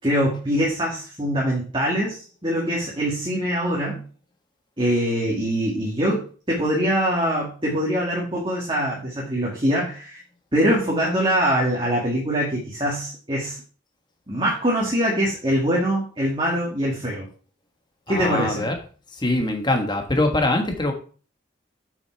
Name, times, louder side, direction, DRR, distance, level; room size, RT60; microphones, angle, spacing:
voice 1, 0.0-4.0 4.8-10.2 10.5-13.6 14.3-17.3 18.1-18.6, equal, 25° right, -5 dB, 2.2 m, -23 dB
voice 2, 18.1-18.8 19.1-20.9, left 2 dB, 20° left, 4 dB, 1.5 m, -23 dB
7.7 x 6.4 x 4.6 m, 0.39 s
head